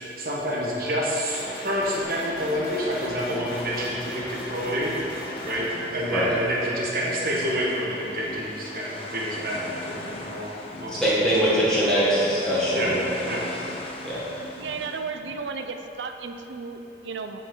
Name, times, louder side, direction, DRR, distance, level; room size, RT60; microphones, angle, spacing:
voice 1, 0.0-5.0 5.4-11.0 12.7-12.9 13.2-13.4, equal, 55° right, -5 dB, 1.3 m, -28 dB
sound 1, 1.3-5.7, left 1 dB, 55° left, 1.5 m, -38 dB
sound 2, 2.0-4.3 4.6-6.7 7.0-8.5 9.3-15.0 15.2-15.4, left 2 dB, 85° left, 0.8 m, -44 dB
sound 3, 3.5-15.0, left 2 dB, 30° left, 0.6 m, -41 dB
voice 2, 10.9-13.2 14.0-14.3, equal, 5° left, -10 dB, 1.2 m, -22 dB
voice 3, 14.6-17.4, right 5 dB, 85° right, 7 dB, 0.5 m, -34 dB
9.6 x 5.2 x 3.8 m, 3.0 s
head